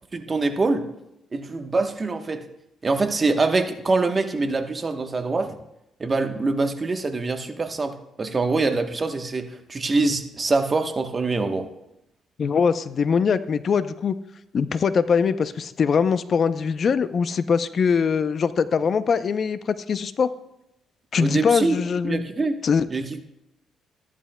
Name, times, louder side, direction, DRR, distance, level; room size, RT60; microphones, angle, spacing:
voice 1, 0.1-0.9 1.3-2.5 2.8-5.6 6.0-11.7 21.2-22.6 22.9-23.2, right 3 dB, 30° right, 6 dB, 1.0 m, -24 dB
voice 2, 12.4-14.1 14.5-20.3 21.1-22.2 22.6-22.9, left 6 dB, 50° left, 13 dB, 0.5 m, -22 dB
14.0 x 11.0 x 2.2 m, 0.85 s
cardioid pair, 90°, 0 cm